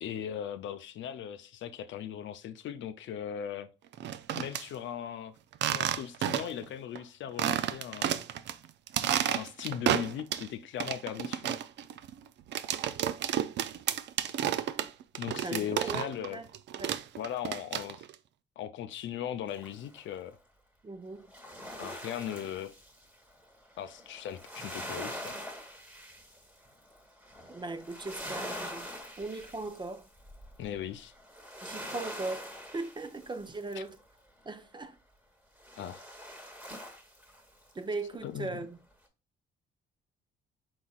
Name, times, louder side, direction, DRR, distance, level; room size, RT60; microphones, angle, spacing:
voice 1, 0.0-3.7 4.3-5.3 5.7-8.2 9.3-11.6 14.2-14.3 15.1-16.4 17.2-18.0 18.6-20.3 21.8-22.7 23.8-25.3 30.6-31.1 35.8-36.0 38.2-38.7, left 9 dB, 70° left, 0.5 m, -38 dB
sound 1, 3.9-4.6 5.5-6.6 7.0-7.1 7.4-8.5 8.9-10.5 10.8-16.3 16.5-18.1, right 10 dB, 65° right, 0.4 m, -31 dB
voice 2, 15.4-16.4 16.8-17.0 20.8-21.3 27.5-28.9 29.2-30.1 31.6-34.0 34.4-35.0 37.7-38.8, right 3 dB, 25° right, 0.6 m, -38 dB
sound 2, 19.5-20.1 21.2-34.0 35.6-37.7 38.1-38.2, equal, 5° right, 1.3 m, -44 dB
4.7 x 4.0 x 2.4 m
cardioid pair, 90°, 20 cm